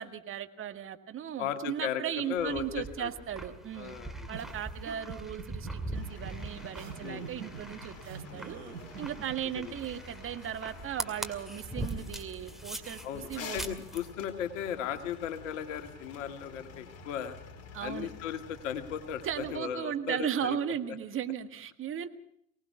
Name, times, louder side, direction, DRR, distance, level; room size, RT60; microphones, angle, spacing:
voice 1, 0.0-4.0 4.3-8.6 9.0-13.8 17.7-18.1 19.2-22.1, right 9 dB, 30° right, 9 dB, 1.8 m, -36 dB
voice 2, 1.4-3.1 3.8-4.1 7.0-7.3 9.6-9.7 13.0-17.4 17.8-20.6, left 9 dB, 65° left, 8 dB, 2.1 m, -36 dB
sound 1, 2.3-14.1, right 1 dB, ahead, 2.3 m, -42 dB
sound 2, 4.3-9.6, right 6 dB, 65° right, 4.6 m, -45 dB
sound 3, 5.9-19.6, left 4 dB, 35° left, 4.3 m, -49 dB
24.0 x 19.0 x 5.8 m, 0.70 s
hypercardioid pair, 90°, 40 cm